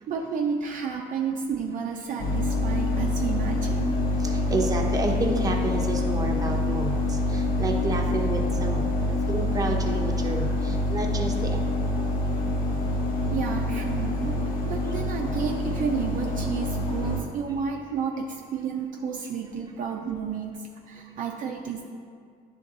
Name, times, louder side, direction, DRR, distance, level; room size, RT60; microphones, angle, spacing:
voice 1, 0.1-4.0 13.3-21.8, right 6 dB, 50° right, 1 dB, 0.5 m, -31 dB
sound 1, 2.2-17.2, left 2 dB, 50° left, 1.1 m, -26 dB
voice 2, 4.2-11.9, right 2 dB, 20° right, 1 dB, 0.8 m, -30 dB
9.9 x 3.5 x 3.8 m, 2.1 s
cardioid pair, 110°, 17 cm